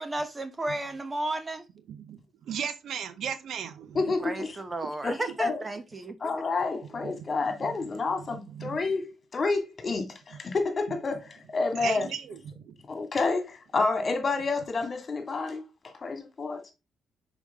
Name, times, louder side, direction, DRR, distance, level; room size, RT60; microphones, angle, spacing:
voice 1, 0.0-1.6 4.2-6.3, right 1 dB, 25° right, 1.1 m, -33 dB
voice 2, 1.9-2.2 2.5-4.0 7.0-7.1 8.3-8.8 11.7-12.7, right 8 dB, 70° right, 0.8 m, -36 dB
voice 3, 3.9-4.5 5.0-5.6 6.2-12.1 12.9-16.6, left 3 dB, 40° left, 2.2 m, -29 dB
6.3 x 5.0 x 3.6 m
cardioid pair, 90°, 0 cm